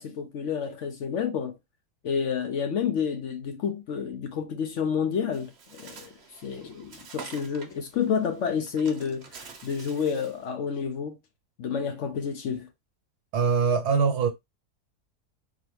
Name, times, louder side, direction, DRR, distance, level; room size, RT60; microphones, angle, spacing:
voice 1, 0.0-1.6 2.0-11.2 11.6-12.7, left 7 dB, 65° left, 0.8 m, -29 dB
Bird, 5.3-10.4, right 5 dB, 50° right, 0.9 m, -47 dB
voice 2, 13.3-14.3, right 5 dB, 85° right, 1.3 m, -22 dB
4.0 x 2.9 x 3.0 m
omnidirectional pair, 1.7 m